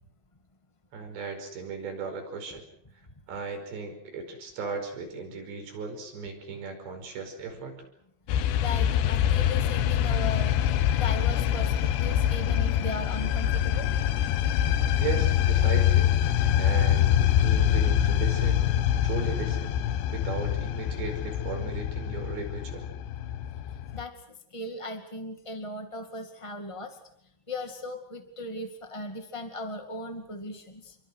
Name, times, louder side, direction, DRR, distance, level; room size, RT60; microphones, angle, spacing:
voice 1, 0.9-2.6 3.3-7.9 15.0-16.1 16.6-18.6 19.0-19.8 20.1-22.9, right 4 dB, 85° right, 5 dB, 7.3 m, -36 dB
sound 1, 8.3-24.0, left 10 dB, 80° left, 3.3 m, -25 dB
voice 2, 8.6-10.5 11.0-13.9 23.9-24.1 24.5-27.0 27.5-30.9, left 1 dB, 20° left, 6 dB, 0.7 m, -37 dB
29.0 x 23.5 x 6.4 m, 0.69 s
omnidirectional pair, 4.8 m